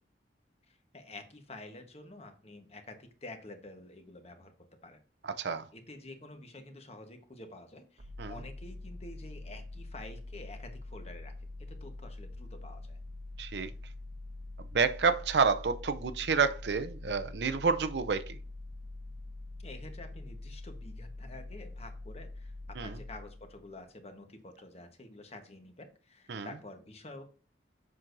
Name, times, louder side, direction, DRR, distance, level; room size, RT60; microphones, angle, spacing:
voice 1, 0.7-4.6 4.8-5.0 5.7-11.3 11.6-13.0 19.6-27.2, left 2 dB, 35° left, 1.1 m, -49 dB
voice 2, 5.2-5.7 8.2-8.4 13.4-13.7 14.7-18.4 22.8-23.0 26.3-26.5, right 5 dB, 70° right, 0.5 m, -29 dB
sound 1, 8.0-23.8, left 2 dB, 40° right, 0.9 m, -45 dB
7.5 x 6.1 x 2.6 m
head